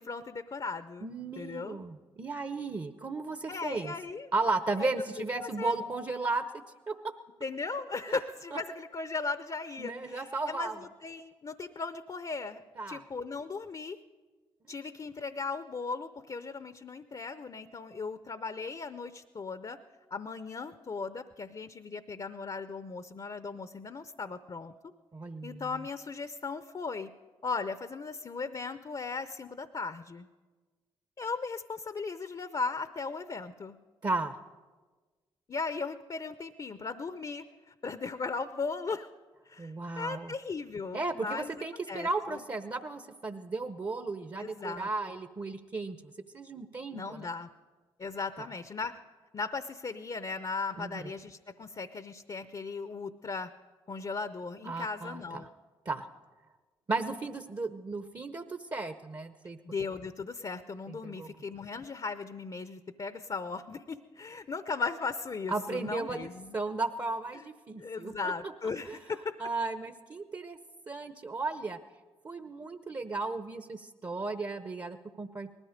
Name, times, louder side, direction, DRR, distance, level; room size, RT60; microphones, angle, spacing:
voice 1, 0.0-1.1 1.4-1.8 3.5-4.3 4.8-5.0 5.6-5.8 7.4-14.0 14.7-19.8 20.1-24.7 25.4-27.1 27.4-30.3 31.2-33.8 35.5-39.1 39.5-42.4 44.4-44.9 46.9-47.5 48.0-49.0 49.3-53.5 53.9-55.5 59.6-66.6 67.3-67.4 67.8-69.4, left 4 dB, 40° left, 12 dB, 0.7 m, -37 dB
voice 2, 1.0-3.9 4.3-7.0 9.8-10.8 12.8-13.0 25.1-25.6 34.0-34.3 39.6-40.3 40.9-47.3 48.4-48.5 50.8-51.0 54.6-55.5 55.9-56.1 56.9-59.6 60.9-61.3 65.5-66.3 66.5-68.3 68.8-69.0 69.4-70.6 70.9-71.8 72.2-75.5, right 3 dB, 35° right, 9 dB, 0.8 m, -35 dB
19.5 x 13.5 x 5.1 m, 1.3 s
supercardioid pair, 45°, 11 cm